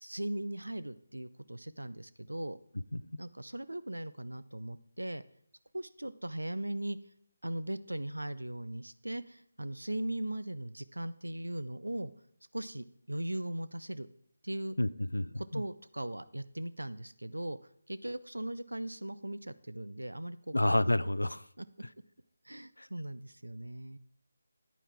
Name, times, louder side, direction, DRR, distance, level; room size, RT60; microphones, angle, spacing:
voice 1, 0.0-2.6 3.2-5.2 5.7-7.0 7.4-12.1 12.5-14.1 14.4-14.7 15.3-17.6 17.9-20.5 21.6-21.7 22.4-24.0, right 1 dB, 80° right, 0.6 m, -39 dB
voice 2, 14.8-15.6 20.5-21.4 22.8-22.9, left 1 dB, 80° left, 0.4 m, -30 dB
9.9 x 9.3 x 3.6 m
figure-of-eight pair, 155°, 0 cm